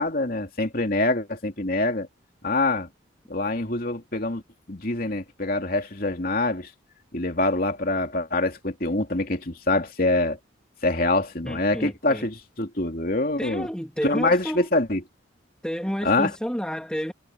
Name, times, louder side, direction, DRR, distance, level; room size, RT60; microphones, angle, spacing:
voice 1, 0.0-2.1 2.4-2.9 3.3-4.4 4.7-6.7 7.1-10.4 10.8-13.7 14.0-15.0 16.0-16.3, left 2 dB, 45° left, 3.1 m, -25 dB
voice 2, 11.4-12.3 13.4-14.7 15.6-17.1, equal, 5° left, 2.7 m, -30 dB
head